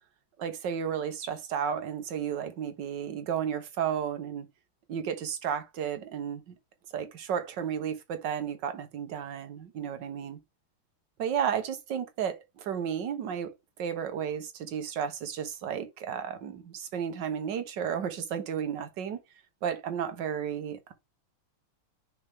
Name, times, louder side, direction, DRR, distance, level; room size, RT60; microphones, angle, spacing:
voice 1, 0.4-4.5 4.9-6.5 6.9-10.4 11.2-13.5 13.8-19.2 19.6-20.9, right 8 dB, 60° right, 1.7 m, -33 dB
6.6 x 4.3 x 3.5 m
omnidirectional pair, 2.3 m